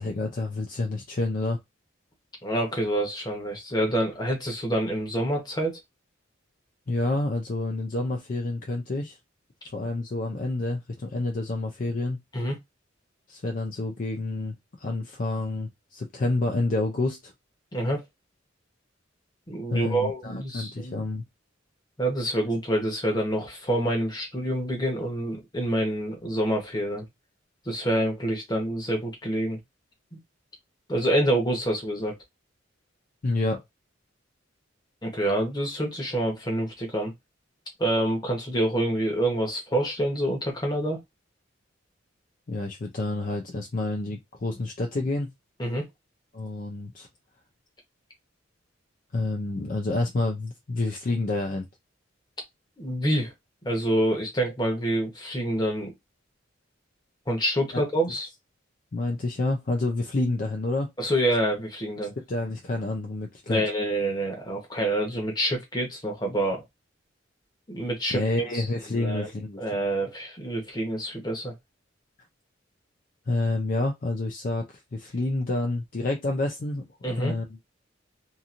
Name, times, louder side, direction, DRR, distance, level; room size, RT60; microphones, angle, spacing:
voice 1, 0.0-1.6 6.9-9.2 9.7-12.2 13.3-17.3 19.7-21.2 33.2-33.6 42.5-45.3 46.3-47.1 49.1-51.7 57.7-57.8 58.9-60.9 62.3-63.6 68.1-69.6 73.3-76.9 77.2-77.5, left 2 dB, 45° left, 0.5 m, -28 dB
voice 2, 2.4-5.8 12.3-12.5 17.7-18.0 19.5-21.0 22.0-27.1 27.6-29.6 30.9-32.2 35.0-37.1 37.8-41.0 45.6-45.8 52.8-53.3 53.6-55.9 57.3-58.3 61.0-62.1 63.5-66.6 67.7-68.2 68.5-68.6 68.9-69.3 69.6-71.5 77.0-77.3, right 1 dB, 20° left, 1.0 m, -27 dB
2.9 x 2.6 x 2.5 m
head